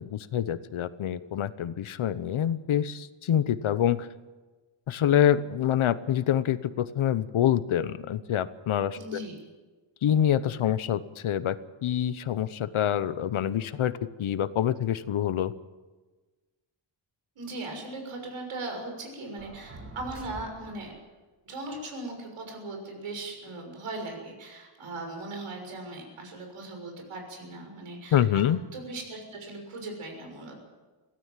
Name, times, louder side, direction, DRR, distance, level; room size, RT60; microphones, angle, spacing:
voice 1, 0.0-4.1 4.9-9.2 10.0-11.6 11.8-15.5 28.1-28.6, left 10 dB, 75° left, 15 dB, 1.0 m, -26 dB
voice 2, 8.9-9.4 17.3-20.9 21.4-28.4 28.7-30.6, right 2 dB, 85° right, 3 dB, 6.5 m, -39 dB
sound 1, 19.4-21.1, right 2 dB, 30° right, 2.2 m, -45 dB
23.5 x 16.5 x 7.5 m, 1.3 s
wide cardioid pair, 145°, 49 cm